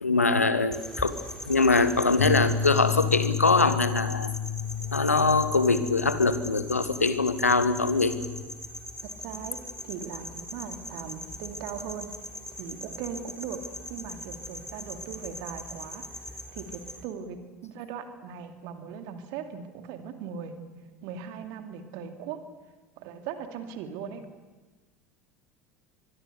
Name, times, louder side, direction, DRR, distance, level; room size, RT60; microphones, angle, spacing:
voice 1, 0.0-1.2 1.4-4.3 4.9-8.2, left 3 dB, 85° left, 12 dB, 1.3 m, -23 dB
sound 1, 0.7-17.0, left 1 dB, 5° left, 3.6 m, -41 dB
Bass guitar, 2.2-8.4, left 6 dB, 70° left, 7.6 m, -32 dB
voice 2, 9.0-9.6 9.8-12.1 12.6-13.6 13.9-20.6 21.0-22.4 23.0-24.2, right 7 dB, 55° right, 6 dB, 2.5 m, -39 dB
23.5 x 22.0 x 6.9 m, 1.2 s
figure-of-eight pair, 70°, 8 cm